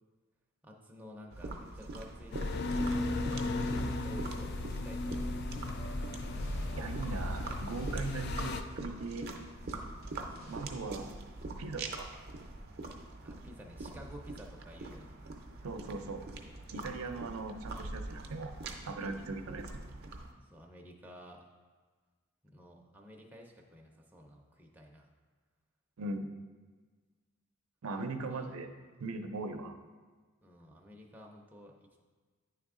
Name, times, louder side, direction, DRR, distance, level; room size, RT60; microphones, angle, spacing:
voice 1, 0.6-6.0 10.1-10.8 13.2-15.2 20.4-21.5 22.5-25.1 28.3-28.6 30.4-32.0, equal, 10° right, -1 dB, 0.5 m, -53 dB
sound 1, 1.3-20.3, right 2 dB, 50° right, 0.6 m, -44 dB
sound 2, 2.3-8.6, left 2 dB, 50° left, 0.3 m, -35 dB
sound 3, 5.7-10.8, equal, 75° left, 1.5 m, -47 dB
voice 2, 6.7-9.3 10.5-11.2 11.6-12.1 15.6-16.2 16.7-18.5 18.9-19.9 26.0-26.3 27.8-28.7 29.0-29.8, right 3 dB, 90° right, 5 dB, 0.5 m, -39 dB
9.4 x 3.4 x 3.7 m, 1.4 s
head